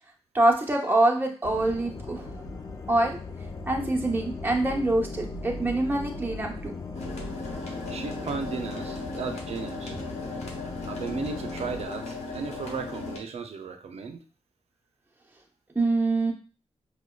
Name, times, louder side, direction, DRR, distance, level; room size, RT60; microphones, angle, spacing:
voice 1, 0.3-2.3 2.9-3.2 3.7-6.7 15.7-16.3, right 2 dB, 20° right, 0 dB, 0.8 m, -25 dB
sound 1, 1.4-11.9, left 3 dB, 30° left, 0.4 m, -39 dB
sound 2, 6.9-13.2, left 3 dB, 85° left, 0.8 m, -37 dB
voice 2, 7.9-10.1 10.8-14.2, right 5 dB, 70° right, 7 dB, 0.5 m, -35 dB
4.8 x 2.2 x 2.3 m, 0.38 s
cardioid pair, 75°, 11 cm